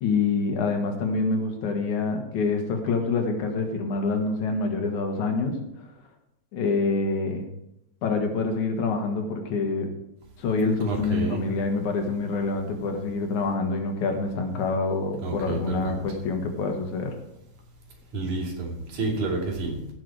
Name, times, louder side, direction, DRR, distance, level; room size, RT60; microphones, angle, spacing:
voice 1, 0.0-5.9 6.5-7.5 8.0-9.9 10.4-17.2, left 3 dB, 75° left, 3 dB, 3.0 m, -26 dB
voice 2, 10.8-11.4 15.2-16.0 18.1-19.9, right 3 dB, 80° right, -1 dB, 4.1 m, -29 dB
16.0 x 6.6 x 4.8 m, 0.84 s
omnidirectional pair, 3.4 m